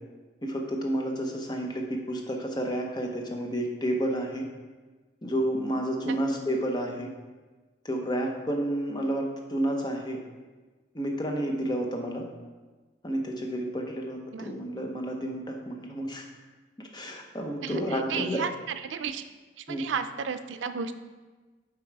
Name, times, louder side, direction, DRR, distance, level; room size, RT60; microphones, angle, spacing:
voice 1, 0.4-1.8 2.1-4.4 5.2-7.1 7.8-10.2 10.9-12.2 13.0-16.2 16.9-18.4 19.7-19.8, right 1 dB, 25° left, 1 dB, 0.9 m, -30 dB
voice 2, 17.6-19.2 19.7-21.0, right 6 dB, 90° right, 10 dB, 0.4 m, -33 dB
7.3 x 4.6 x 4.6 m, 1.3 s
head